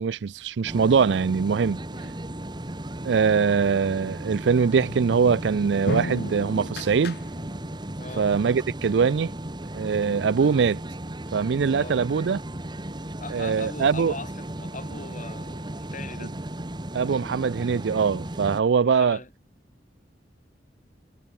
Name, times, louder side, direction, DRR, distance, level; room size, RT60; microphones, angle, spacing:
voice 1, 0.0-1.8 3.0-7.2 8.2-9.3 9.7-10.8 11.3-12.4 13.3-14.1 16.9-19.2, right 6 dB, 90° right, 0.4 m, -22 dB
sound 1, 0.6-18.6, right 1 dB, 25° right, 1.7 m, -36 dB
sound 2, 4.8-7.8, left 2 dB, 65° left, 1.1 m, -34 dB
voice 2, 8.0-8.3 11.7-12.0 13.2-16.3 18.8-19.3, left 3 dB, 45° left, 4.4 m, -40 dB
head